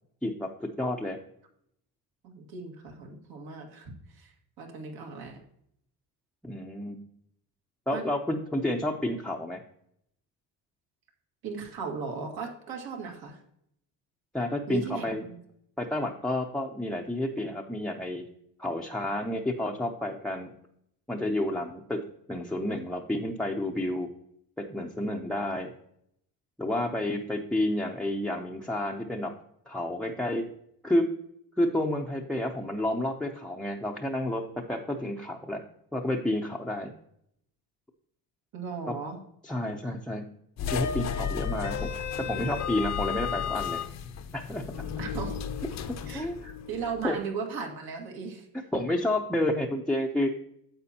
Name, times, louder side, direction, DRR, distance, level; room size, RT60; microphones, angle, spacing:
voice 1, 0.2-1.2 6.4-6.9 7.9-9.6 14.3-15.2 15.8-18.2 18.6-20.5 21.1-22.0 22.3-24.1 24.6-25.7 26.6-29.3 29.7-30.4 30.8-31.1 31.6-35.6 35.9-36.9 38.9-39.0 39.4-40.2 40.7-41.9 42.3-43.8 44.3-44.6 45.9-46.5 47.0-47.2 48.7-50.3, left 1 dB, ahead, 1 dB, 0.6 m, -30 dB
voice 2, 2.2-4.3 4.6-5.4 7.9-8.1 11.4-13.4 14.7-15.4 38.5-39.2 45.0-45.3 46.1-46.2 46.7-48.5, right 5 dB, 70° right, 2 dB, 1.9 m, -37 dB
sound 1, 40.6-47.1, left 7 dB, 45° left, 0.7 m, -33 dB
9.7 x 7.4 x 2.8 m, 0.73 s
cardioid pair, 120°, 38 cm